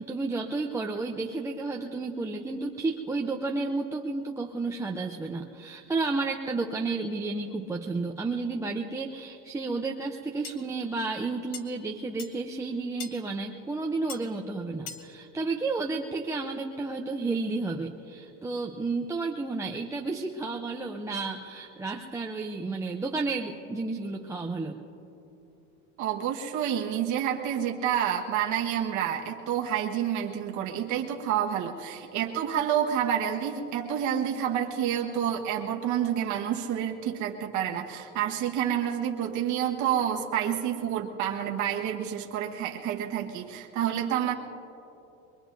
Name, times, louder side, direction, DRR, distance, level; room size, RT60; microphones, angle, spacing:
voice 1, 0.0-24.8, right 3 dB, 10° right, 0 dB, 0.6 m, -32 dB
sound 1, 10.4-10.6 11.5-11.6 12.2-12.3 13.0-13.2 14.1-14.2 14.9-15.1, left 6 dB, 65° left, 1.3 m, -39 dB
voice 2, 26.0-44.3, right 9 dB, 60° right, 0 dB, 1.3 m, -29 dB
23.5 x 22.5 x 2.6 m, 2.9 s
cardioid pair, 130°, 34 cm